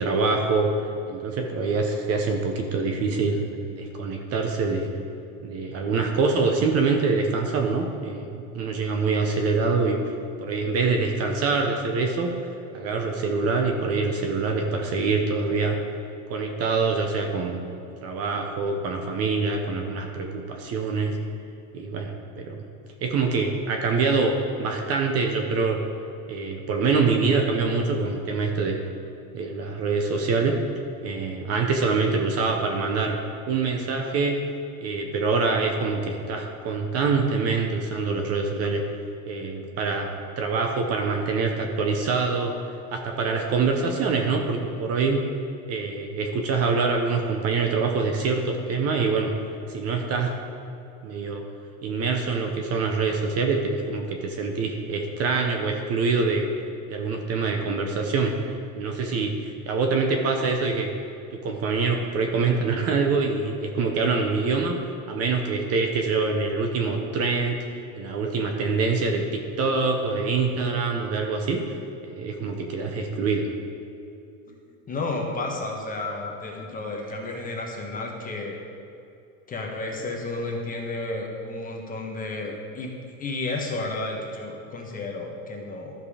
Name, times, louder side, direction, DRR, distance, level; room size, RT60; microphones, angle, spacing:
voice 1, 0.0-3.4 3.6-4.9 5.4-10.1 10.4-12.3 12.7-15.8 16.3-17.6 18.0-21.2 21.7-22.6 23.0-24.3 24.6-25.8 26.3-28.8 29.3-30.5 31.0-33.2 33.5-34.4 34.8-38.8 39.3-40.1 40.4-42.5 42.9-45.2 45.7-49.3 49.7-50.3 51.0-51.4 51.8-56.5 56.9-60.9 61.3-64.8 65.1-67.6 67.9-71.6 72.0-73.5, right 4 dB, 35° right, 3 dB, 0.9 m, -25 dB
voice 2, 74.9-78.6 79.5-82.9 83.2-85.9, left 2 dB, 20° left, 0 dB, 1.2 m, -32 dB
12.0 x 5.3 x 5.0 m, 2.7 s
supercardioid pair, 135°, 44 cm